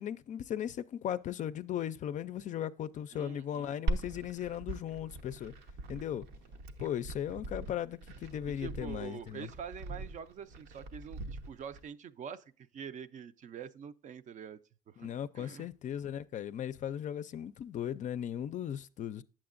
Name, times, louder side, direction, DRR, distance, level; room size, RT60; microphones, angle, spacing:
voice 1, 0.0-5.5 5.9-6.2 6.8-9.5 15.0-19.2, left 10 dB, 50° left, 0.4 m, -37 dB
voice 2, 3.1-3.7 8.6-14.6 14.9-15.1 15.4-15.7, right 7 dB, 45° right, 0.5 m, -45 dB
Glass, 3.9-11.8, right 2 dB, 85° right, 0.8 m, -40 dB
8.6 x 7.4 x 2.5 m
cardioid pair, 110°, 17 cm